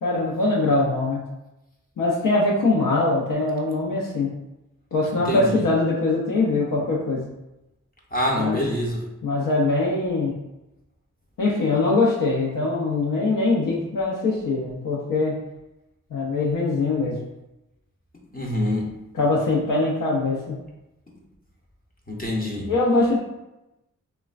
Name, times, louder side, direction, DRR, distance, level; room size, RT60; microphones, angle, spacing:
voice 1, 0.0-1.2 2.0-4.3 4.9-7.2 8.4-8.6 9.2-10.4 11.4-15.4 16.1-17.2 19.1-20.6 22.7-23.2, left 2 dB, 80° left, -4 dB, 0.5 m, -22 dB
voice 2, 5.3-5.6 8.1-9.0 18.3-18.9 22.1-22.7, left 1 dB, 30° left, -2 dB, 0.5 m, -25 dB
3.0 x 2.1 x 2.4 m, 0.94 s
wide cardioid pair, 55°, 31 cm